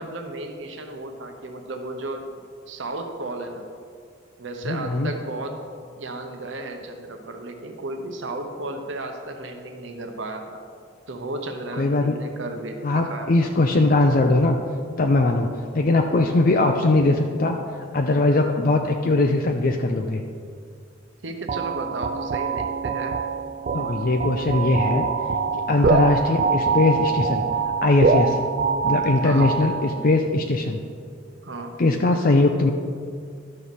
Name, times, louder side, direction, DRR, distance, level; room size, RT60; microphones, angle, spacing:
voice 1, 0.0-2.3 2.7-3.7 4.4-5.6 6.0-10.6 11.1-13.5 21.2-23.2 25.8-26.0 29.2-29.5 31.4-31.7, right 2 dB, 70° right, 4 dB, 0.9 m, -34 dB
voice 2, 4.7-5.1 11.8-12.1 12.8-14.6 15.0-15.5 15.7-17.6 17.9-20.2 23.7-25.1 25.5-27.4 27.8-28.4 28.8-30.8 31.8-32.7, left 2 dB, 45° left, 3 dB, 0.5 m, -20 dB
sound 1, 21.5-30.2, right 5 dB, 45° right, 0.3 m, -24 dB
12.0 x 6.3 x 4.1 m, 2.2 s
head